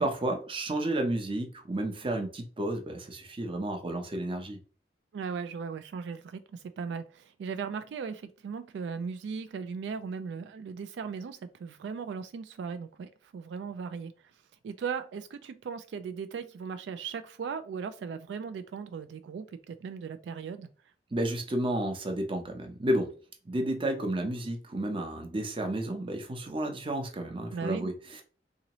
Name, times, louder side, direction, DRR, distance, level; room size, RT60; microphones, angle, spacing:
voice 1, 0.0-4.6 21.1-23.1 23.5-28.2, right 1 dB, 30° right, 0.7 m, -31 dB
voice 2, 5.1-14.1 14.6-20.7 27.5-27.9, right 6 dB, 80° right, 0.3 m, -37 dB
3.8 x 2.7 x 2.9 m
head